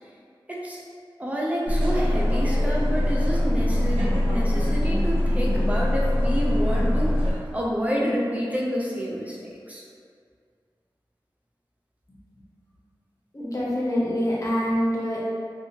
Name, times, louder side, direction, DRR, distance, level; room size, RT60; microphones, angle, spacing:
voice 1, 0.5-0.8 1.2-9.8, equal, 15° right, -4 dB, 0.5 m, -28 dB
sound 1, 1.7-7.3, left 1 dB, 75° right, 0.5 m, -22 dB
voice 2, 13.3-15.2, equal, 40° left, -7 dB, 0.8 m, -25 dB
2.7 x 2.4 x 2.8 m, 2.2 s
wide cardioid pair, 50°, 9 cm